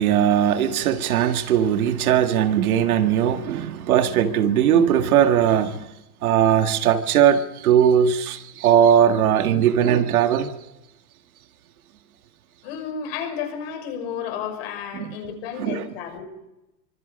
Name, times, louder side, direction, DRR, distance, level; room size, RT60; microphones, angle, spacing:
voice 1, 0.0-5.8 6.2-10.5 14.9-15.2 15.6-15.8, right 9 dB, 60° right, 2.0 m, -19 dB
voice 2, 12.6-16.2, left 7 dB, 40° left, 6.1 m, -32 dB
28.0 x 25.0 x 5.3 m
supercardioid pair, 175°, 49 cm